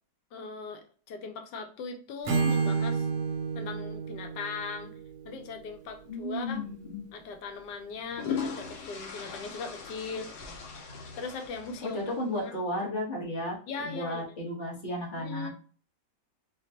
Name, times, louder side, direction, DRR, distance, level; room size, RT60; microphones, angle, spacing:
voice 1, 0.3-3.0 3.5-4.9 5.2-6.6 7.1-10.3 11.2-12.0 12.4-12.5 13.7-14.2 15.2-15.5, left 4 dB, 90° left, 5 dB, 1.3 m, -39 dB
Acoustic guitar / Strum, 2.2-6.2, right 5 dB, 65° right, 0.9 m, -31 dB
voice 2, 6.1-7.0 11.8-15.5, left 1 dB, 35° left, -2 dB, 1.2 m, -34 dB
sound 1, 6.4-6.6 7.8-12.4, left 6 dB, 70° left, 1.2 m, -39 dB
4.2 x 2.3 x 2.7 m, 0.41 s
omnidirectional pair, 1.8 m